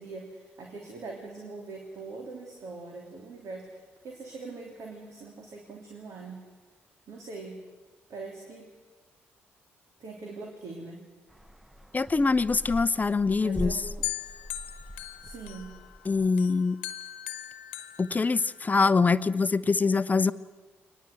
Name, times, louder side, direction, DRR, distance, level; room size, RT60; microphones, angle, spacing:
voice 1, 0.0-6.4 7.1-7.6 8.1-8.7 10.0-11.1 13.4-14.1 15.2-15.7, right 3 dB, 55° right, 1 dB, 3.1 m, -42 dB
sound 1, 11.3-16.3, equal, 5° right, 1.0 m, -41 dB
voice 2, 11.9-13.8 16.1-16.8 18.0-20.3, left 4 dB, 25° left, 16 dB, 0.8 m, -24 dB
sound 2, 14.0-16.0 16.4-18.9, left 14 dB, 75° left, 1.2 m, -39 dB
23.5 x 20.0 x 7.9 m, 1.3 s
figure-of-eight pair, 40°, 6 cm